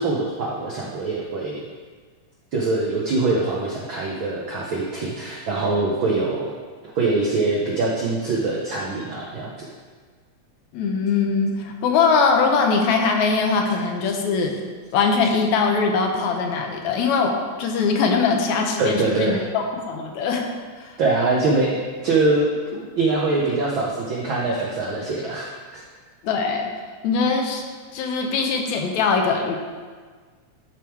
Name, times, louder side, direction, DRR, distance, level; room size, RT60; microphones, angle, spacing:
voice 1, 0.0-1.6 2.5-6.5 6.9-9.5 18.8-19.4 21.0-25.8, right 3 dB, 75° right, -3 dB, 1.1 m, -23 dB
voice 2, 10.7-14.6 14.9-17.3 17.6-20.5 20.8-20.9 26.2-26.7 27.0-27.6 27.9-29.6, left 5 dB, 80° left, 2 dB, 2.1 m, -21 dB
12.5 x 4.5 x 3.5 m, 1.5 s
omnidirectional pair, 3.3 m